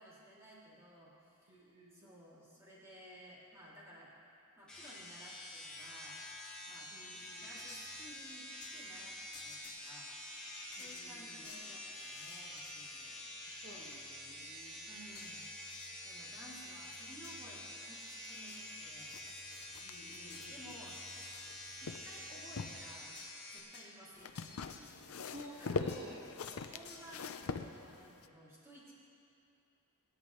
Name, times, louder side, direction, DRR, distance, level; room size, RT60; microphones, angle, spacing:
voice 1, 0.0-4.1 4.6-6.2 6.7-6.9 7.3-10.5 10.7-13.4 14.9-15.4 16.0-19.2 20.5-21.0 21.8-23.2 23.5-24.5 24.8-25.1 25.5-25.9 26.5-28.9, equal, 15° right, -7 dB, 2.6 m, -56 dB
voice 2, 1.5-2.1 6.9-7.5 10.8-11.5 13.6-14.9 19.8-20.8 25.3-26.3, equal, 55° right, -4 dB, 1.7 m, -53 dB
sound 1, 4.7-23.6, left 1 dB, 5° left, 2.1 m, -48 dB
sound 2, 7.7-8.0 8.6-8.7 9.3-10.3 10.7-13.0 15.1-16.0 17.2-17.5 17.9-18.9 19.3-19.9 20.3-21.5 23.1-23.4 23.7-25.5 25.9-26.2 26.4-27.0, left 5 dB, 50° left, 1.6 m, -56 dB
sound 3, 19.1-21.5 21.8-22.8 24.2-28.3, left 4 dB, 75° left, 0.5 m, -42 dB
24.5 x 10.5 x 3.2 m, 2.7 s
head